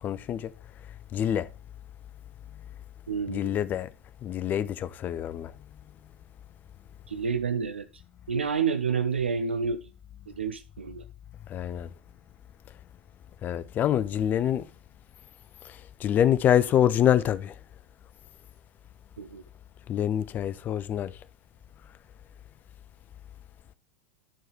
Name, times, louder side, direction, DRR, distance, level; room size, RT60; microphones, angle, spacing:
voice 1, 0.0-0.5 1.1-1.5 3.3-3.9 4.2-5.5 11.5-11.9 13.4-14.7 15.6-17.6 19.9-21.1, left 10 dB, 30° left, 0.4 m, -26 dB
voice 2, 3.1-3.6 7.1-7.9 8.3-9.9 10.3-11.0 19.2-19.4, right 6 dB, 80° right, 0.4 m, -29 dB
11.5 x 4.5 x 3.1 m
figure-of-eight pair, 85°, 6 cm